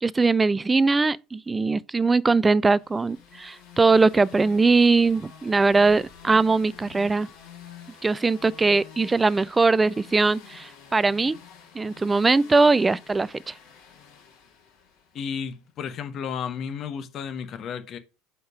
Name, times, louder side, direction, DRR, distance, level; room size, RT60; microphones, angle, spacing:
voice 1, 0.0-7.3 8.0-11.4 11.7-13.6, right 3 dB, 20° right, 0.3 m, -21 dB
sound 1, 2.6-15.5, left 8 dB, 65° left, 2.2 m, -48 dB
voice 2, 15.1-18.0, left 7 dB, 45° left, 0.9 m, -33 dB
4.9 x 4.4 x 4.9 m
hypercardioid pair, 75°, 0 cm